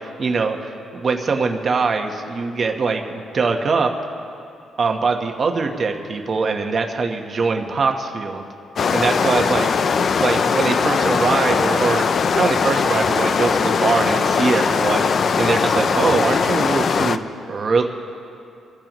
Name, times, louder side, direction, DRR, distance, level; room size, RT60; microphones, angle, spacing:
voice 1, 0.2-3.9 4.8-8.4 8.9-9.7 10.2-12.0 12.3-17.2 17.5-17.8, right 4 dB, 35° right, 4 dB, 1.1 m, -22 dB
sound 1, 8.8-17.2, left 5 dB, 45° left, 0.4 m, -20 dB
24.5 x 14.0 x 3.1 m, 2.6 s
cardioid pair, 140°, 0 cm